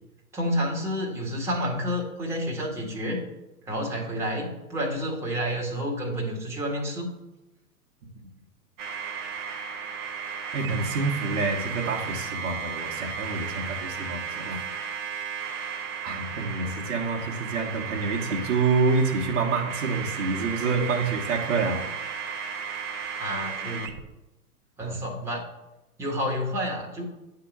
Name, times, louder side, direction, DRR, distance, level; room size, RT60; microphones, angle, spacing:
voice 1, 0.3-3.2 3.7-7.1 23.2-23.9 24.8-25.4 26.0-27.0, equal, 5° right, -3 dB, 1.5 m, -29 dB
sound 1, 8.8-24.0, right 7 dB, 30° right, 0.7 m, -34 dB
voice 2, 10.5-14.6 16.0-21.9 24.8-24.9, right 4 dB, 50° right, 1 dB, 1.5 m, -27 dB
9.5 x 3.8 x 6.1 m, 0.99 s
figure-of-eight pair, 105°, 47 cm